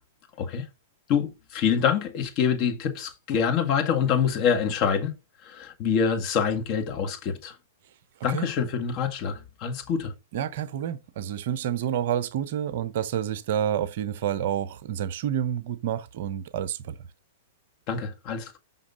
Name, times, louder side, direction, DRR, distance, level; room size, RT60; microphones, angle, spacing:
voice 1, 1.1-5.1 5.4-7.5 8.2-10.1 17.9-18.6, left 7 dB, 40° left, 1.8 m, -26 dB
voice 2, 10.3-17.0, right 10 dB, 55° right, 0.7 m, -29 dB
6.1 x 5.8 x 5.0 m
hypercardioid pair, 110°, 0 cm